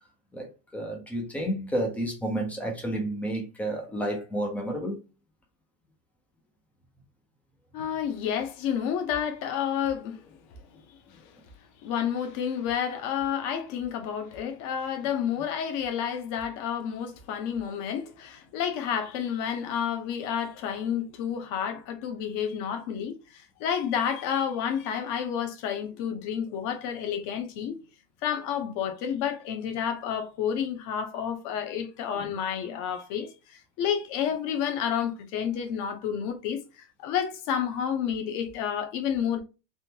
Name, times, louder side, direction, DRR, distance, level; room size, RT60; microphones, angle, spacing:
voice 1, 0.3-5.0 32.1-32.4, right 1 dB, 5° left, 0.4 m, -31 dB
voice 2, 7.7-10.3 10.9-11.3 11.8-27.8 28.2-39.4, left 8 dB, 40° left, 0.8 m, -30 dB
3.6 x 2.1 x 2.7 m
supercardioid pair, 130°, 48 cm